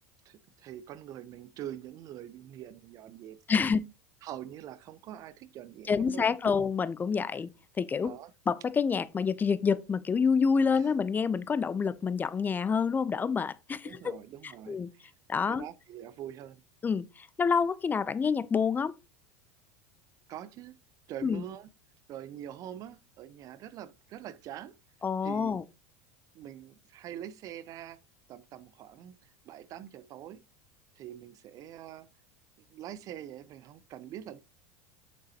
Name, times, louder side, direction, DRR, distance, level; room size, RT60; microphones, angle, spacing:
voice 1, 0.3-3.8 4.2-6.5 8.0-8.3 10.7-10.9 13.8-15.1 15.5-16.6 20.3-20.8 21.1-21.7 22.1-24.7 25.2-25.6 26.3-28.0 28.3-30.4 31.0-32.1 32.7-34.4, right 11 dB, 45° right, 0.7 m, -44 dB
voice 2, 3.5-3.8 5.9-7.5 7.8-8.1 8.5-14.2 14.4-14.9 15.3-15.6 16.8-19.0 21.2-21.4 25.0-25.6, left 5 dB, 20° left, 0.6 m, -28 dB
8.5 x 7.4 x 2.8 m
hypercardioid pair, 85°, 8 cm